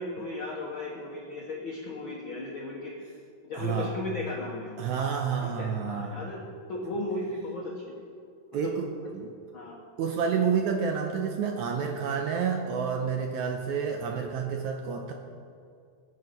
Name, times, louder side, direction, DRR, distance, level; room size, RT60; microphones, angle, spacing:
voice 1, 0.0-2.9 3.4-4.8 5.4-6.4 6.7-8.1 8.6-8.7 9.5-9.8, left 2 dB, 65° left, -2 dB, 1.2 m, -35 dB
voice 2, 3.5-4.0 4.8-6.3 8.5-9.3 10.0-15.1, right 6 dB, 75° right, 3 dB, 1.9 m, -29 dB
20.5 x 7.3 x 5.3 m, 2.4 s
omnidirectional pair, 4.1 m